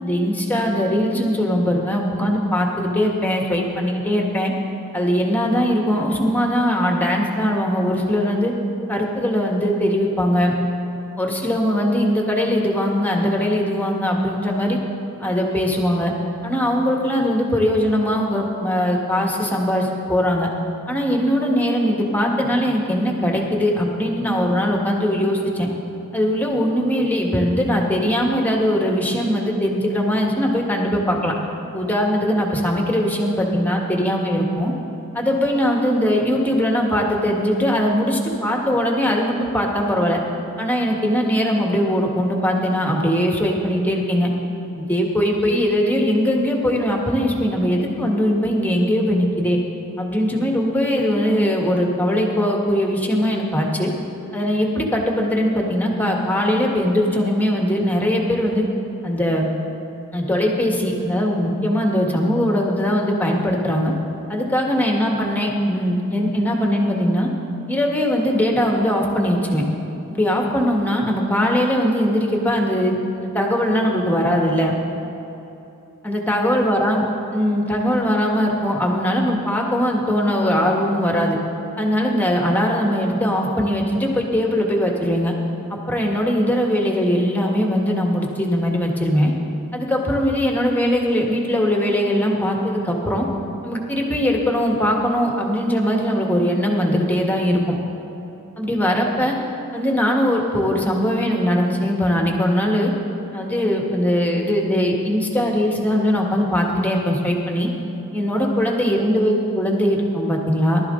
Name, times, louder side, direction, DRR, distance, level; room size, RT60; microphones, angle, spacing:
voice 1, 0.0-4.5 4.9-8.5 8.9-10.5 11.2-14.8 15.2-16.1 16.4-20.5 20.9-25.7 26.1-31.3 31.7-34.7 35.1-40.2 40.6-44.3 44.8-49.6 50.0-53.9 54.3-58.6 59.0-59.5 60.1-63.9 64.3-67.3 67.7-69.6 70.1-74.7 76.0-77.0 77.3-81.4 81.8-85.3 85.9-89.3 89.7-93.3 93.6-97.8 98.6-99.3 99.7-102.9 103.3-107.7 108.1-110.8, equal, 10° left, 0 dB, 1.6 m, -20 dB
19.5 x 12.5 x 3.8 m, 3.0 s
head